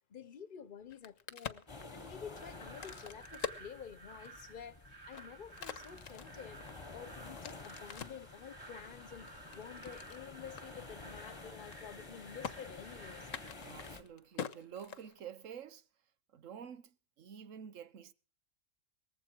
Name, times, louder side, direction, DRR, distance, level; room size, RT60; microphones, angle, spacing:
voice 1, 0.1-6.6 6.9-13.3, left 7 dB, 45° left, 1.0 m, -50 dB
Crack, 0.8-4.5 5.0-8.3 8.8-10.2 10.6-10.7 11.0-11.3 11.6-12.1 12.4-12.5 13.2-15.4, left 8 dB, 85° left, 1.4 m, -45 dB
sound 1, 1.7-14.0, left 3 dB, 25° left, 1.2 m, -51 dB
sound 2, 2.3-13.5, right 2 dB, 25° right, 2.3 m, -55 dB
voice 2, 13.6-15.8 16.3-18.1, right 8 dB, 80° right, 1.3 m, -49 dB
19.5 x 15.0 x 4.6 m
omnidirectional pair, 1.3 m